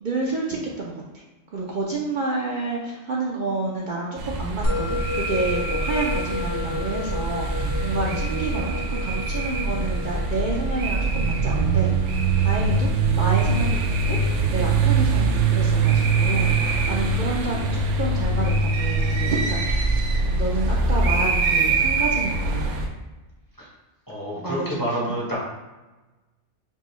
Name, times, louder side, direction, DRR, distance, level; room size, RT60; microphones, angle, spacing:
voice 1, 0.0-19.8 20.1-22.7 24.4-24.8 25.1-25.2, right 3 dB, 50° right, -4 dB, 0.6 m, -29 dB
sound 1, 4.2-22.9, right 3 dB, 75° right, 0.9 m, -23 dB
Musical instrument, 4.6-15.2, left 4 dB, 70° left, 1.1 m, -33 dB
voice 2, 24.1-25.4, right 1 dB, 20° left, -5 dB, 0.7 m, -28 dB
5.3 x 2.2 x 3.1 m, 1.2 s
omnidirectional pair, 1.2 m